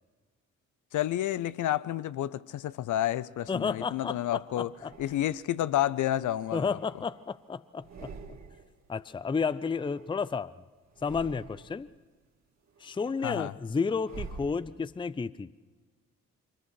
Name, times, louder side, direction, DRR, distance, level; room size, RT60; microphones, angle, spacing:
voice 1, 0.9-4.7 5.0-6.8 13.2-13.5, left 12 dB, 45° left, 0.7 m, -30 dB
sound 1, 2.8-4.0 4.7-5.7 6.1-7.4 7.7-8.8 9.1-10.5 10.9-11.9 12.4-15.1, right 4 dB, 40° right, 2.3 m, -49 dB
voice 2, 3.5-4.9 6.5-8.1 8.9-10.5 11.0-11.9 12.8-15.5, left 5 dB, 10° left, 0.6 m, -32 dB
24.5 x 19.5 x 6.3 m
figure-of-eight pair, 45°, 41 cm